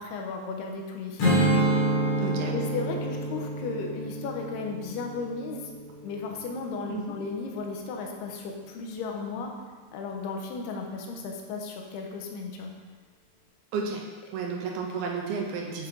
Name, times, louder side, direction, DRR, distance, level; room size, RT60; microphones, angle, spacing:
voice 1, 0.0-1.5 2.5-5.7 6.0-9.5 9.9-12.7, left 4 dB, 80° left, 1 dB, 2.7 m, -35 dB
Strum, 1.2-6.5, right 1 dB, 50° left, 1.8 m, -28 dB
voice 2, 2.2-2.6 6.9-7.2 13.7-14.0 14.3-15.9, right 5 dB, 80° right, 0 dB, 2.5 m, -32 dB
8.0 x 4.3 x 3.7 m, 1.4 s
omnidirectional pair, 4.6 m